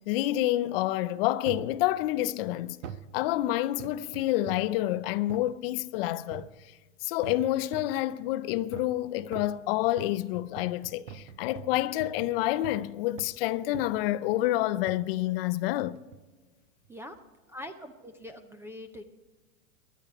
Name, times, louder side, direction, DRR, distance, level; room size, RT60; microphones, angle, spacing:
voice 1, 0.1-2.8 3.1-6.5 7.0-16.0, left 15 dB, 45° left, 0.6 m, -28 dB
sound 1, 1.5-1.8 2.8-3.1 3.8-4.8 5.3-5.5 6.3-6.7 7.2-8.0 8.7-9.0 9.3-12.9 13.2-13.4 13.7-14.1 14.9-15.1 15.9-16.3 16.8-16.9, right 8 dB, 65° right, 1.1 m, -44 dB
voice 2, 17.5-19.0, left 1 dB, 5° right, 0.4 m, -43 dB
18.5 x 11.5 x 4.8 m
hypercardioid pair, 130°, 41 cm